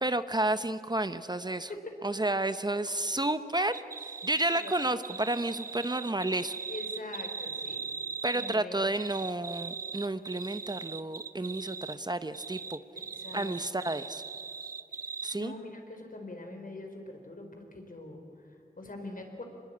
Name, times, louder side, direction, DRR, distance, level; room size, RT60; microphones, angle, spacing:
voice 1, 0.0-1.7 2.0-3.7 4.2-6.6 8.2-12.8 13.3-14.2 15.2-15.5, right 2 dB, 25° right, 12 dB, 0.8 m, -31 dB
sound 1, 3.7-8.6 8.9-12.0 12.3-15.4, right 5 dB, 65° right, 0.7 m, -40 dB
voice 2, 6.7-7.9 8.3-8.8 13.1-13.9 15.3-19.4, left 2 dB, 60° left, 4 dB, 4.2 m, -44 dB
25.5 x 21.0 x 8.7 m, 2.7 s
wide cardioid pair, 75°, 16 cm